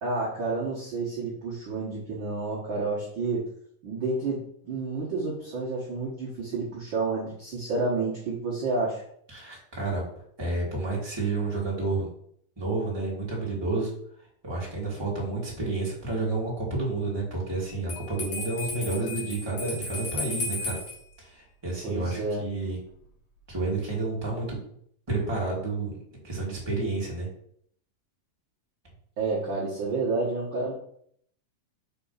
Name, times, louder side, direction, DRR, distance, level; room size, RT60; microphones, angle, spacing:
voice 1, 0.0-3.5 3.8-9.0 21.8-22.4 29.2-30.7, right 3 dB, 65° right, -6 dB, 1.2 m, -30 dB
voice 2, 9.3-10.0 10.4-12.1 12.6-13.9 14.4-20.8 21.2-22.8 23.5-24.6 25.1-26.0 26.2-27.3, right 3 dB, 10° right, -5 dB, 1.7 m, -30 dB
Bell, 17.9-21.0, left 2 dB, 55° left, 3.4 m, -34 dB
6.9 x 3.5 x 5.6 m, 0.66 s
omnidirectional pair, 4.2 m